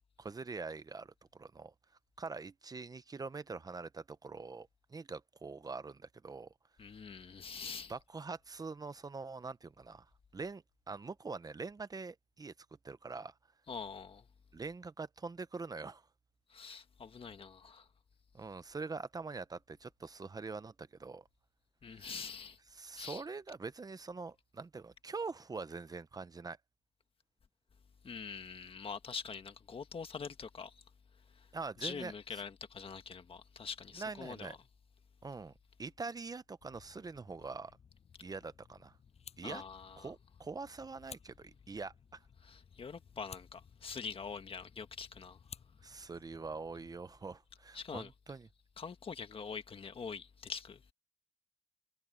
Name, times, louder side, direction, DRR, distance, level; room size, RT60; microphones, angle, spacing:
voice 1, 0.2-1.7 2.2-6.5 7.9-10.1 10.3-12.5 12.8-13.3 14.5-16.1 18.3-21.3 21.9-22.1 22.7-26.6 31.5-32.1 34.0-34.6 35.2-35.5 35.8-37.7 38.2-39.0 39.4-39.6 40.0-42.2 45.8-48.5, right 4 dB, 35° right, 0.8 m, -44 dB
voice 2, 6.8-7.9 13.7-14.2 16.5-17.9 21.8-22.6 23.0-23.2 28.0-30.8 31.3-31.5 31.8-34.6 39.4-40.1 42.4-45.4 47.7-48.1 48.8-50.8, left 5 dB, 60° left, 1.7 m, -44 dB
sound 1, 36.6-47.0, left 7 dB, 80° left, 7.3 m, -58 dB
cardioid pair, 75°, 11 cm